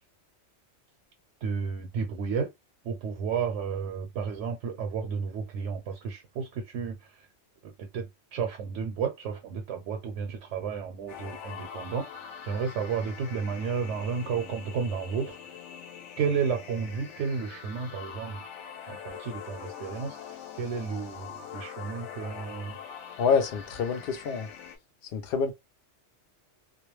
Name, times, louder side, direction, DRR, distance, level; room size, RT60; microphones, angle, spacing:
voice 1, 1.4-2.5 2.8-7.3 7.8-15.4 16.2-18.4 18.9-22.8, right 6 dB, 75° right, 0.9 m, -32 dB
sound 1, 11.1-24.8, left 8 dB, 80° left, 1.0 m, -43 dB
voice 2, 23.2-24.5 25.1-25.5, left 6 dB, 65° left, 0.7 m, -26 dB
2.3 x 2.2 x 3.0 m
omnidirectional pair, 1.2 m